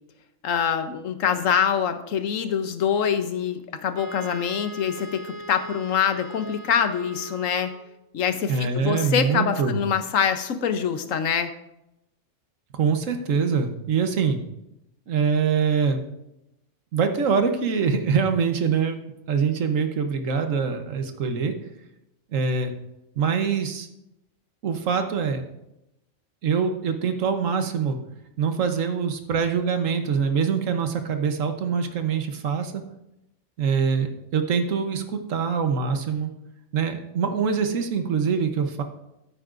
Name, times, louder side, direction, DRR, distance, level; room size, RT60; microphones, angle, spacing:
voice 1, 0.4-7.7 8.1-11.5, left 8 dB, 80° left, 9 dB, 1.2 m, -25 dB
Wind instrument woodwind instrument, 4.0-8.0, right 1 dB, 35° right, 1.0 m, -39 dB
voice 2, 8.5-9.8 12.7-14.4 15.1-16.0 16.9-19.0 19.3-21.5 22.3-22.7 23.2-23.9 24.6-25.4 26.4-28.0 28.4-32.8 33.6-36.3 36.7-38.8, right 6 dB, 80° right, 7 dB, 1.3 m, -24 dB
14.0 x 8.5 x 2.5 m, 0.87 s
omnidirectional pair, 1.3 m